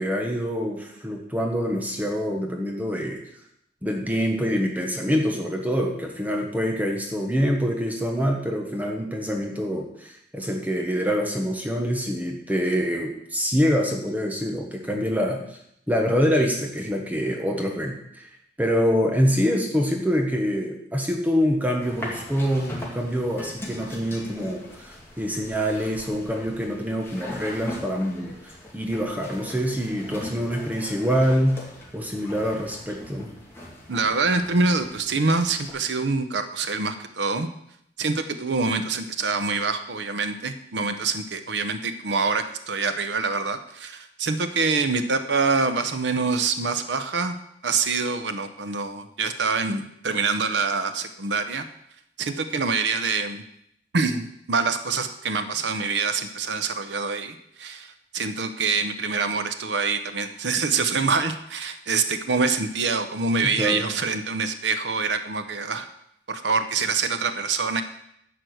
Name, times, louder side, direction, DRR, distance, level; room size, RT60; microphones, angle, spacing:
voice 1, 0.0-3.2 3.8-15.4 15.9-18.3 18.6-31.6 31.9-33.3 63.4-63.9, equal, 10° right, 2 dB, 1.1 m, -25 dB
sound 1, 21.8-35.7, left 1 dB, 15° left, 2.4 m, -40 dB
voice 2, 33.9-37.5 38.0-47.3 47.6-51.6 52.2-53.4 53.9-65.9 66.3-67.8, right 4 dB, 90° right, 9 dB, 0.8 m, -25 dB
11.0 x 4.6 x 7.9 m, 0.75 s
head